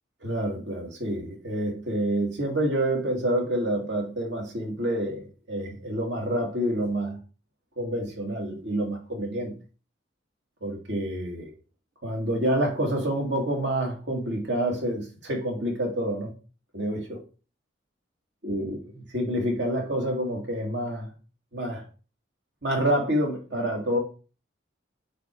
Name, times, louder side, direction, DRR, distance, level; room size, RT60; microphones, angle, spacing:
voice 1, 0.2-7.2 7.8-9.5 10.6-11.5 12.0-16.3 16.7-17.2 18.4-18.8 19.1-21.1 21.5-21.8 22.6-24.0, right 1 dB, 70° right, 2.5 m, -28 dB
8.1 x 3.7 x 4.6 m
head